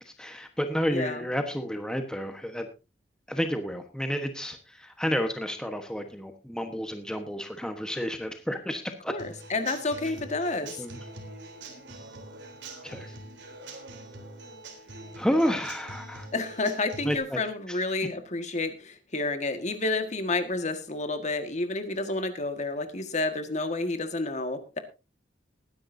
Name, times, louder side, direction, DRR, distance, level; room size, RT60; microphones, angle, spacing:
voice 1, 0.2-2.7 3.3-9.2 10.0-10.1 10.8-11.0 12.8-13.1 15.2-16.3 17.0-17.4 17.7-17.8, equal, 5° left, 6 dB, 1.2 m, -30 dB
voice 2, 0.9-1.2 9.1-10.7 16.3-24.8, left 2 dB, 40° left, 8 dB, 1.7 m, -30 dB
Human voice / Acoustic guitar / Drum, 9.2-17.2, right 2 dB, 85° right, 3.5 m, -44 dB
20.0 x 10.5 x 2.7 m, 0.29 s
head